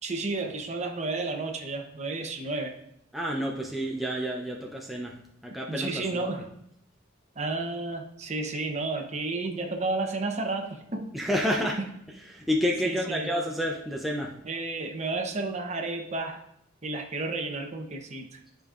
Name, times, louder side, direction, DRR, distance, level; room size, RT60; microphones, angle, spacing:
voice 1, 0.0-2.7 5.7-6.5 7.4-11.2 11.6-11.7 12.8-13.3 14.4-16.4 16.8-18.4, right 3 dB, 35° right, 3 dB, 0.9 m, -32 dB
voice 2, 3.1-5.2 5.4-6.2 11.1-11.8 12.3-14.3, equal, ahead, -1 dB, 0.6 m, -29 dB
11.5 x 5.2 x 2.5 m, 0.76 s
head